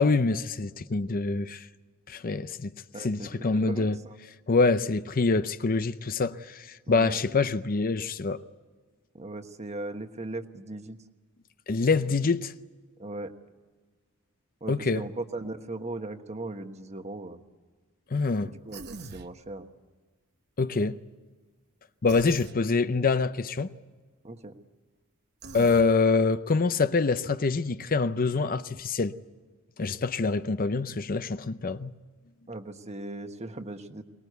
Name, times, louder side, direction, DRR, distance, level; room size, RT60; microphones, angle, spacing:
voice 1, 0.0-1.7 2.1-2.7 3.0-4.0 4.5-8.4 11.7-12.5 14.7-15.0 18.1-18.5 20.6-21.0 22.0-23.7 25.5-29.1 29.8-31.9, left 4 dB, 40° left, 0.6 m, -25 dB
voice 2, 2.9-4.2 6.9-7.2 9.1-11.0 13.0-13.3 14.6-17.4 18.4-19.7 24.2-24.5 32.5-34.0, right 2 dB, 30° right, 1.3 m, -38 dB
Human voice, 18.7-19.3 22.1-22.6 25.4-25.9, right 3 dB, 50° right, 1.0 m, -42 dB
23.5 x 20.5 x 8.1 m
head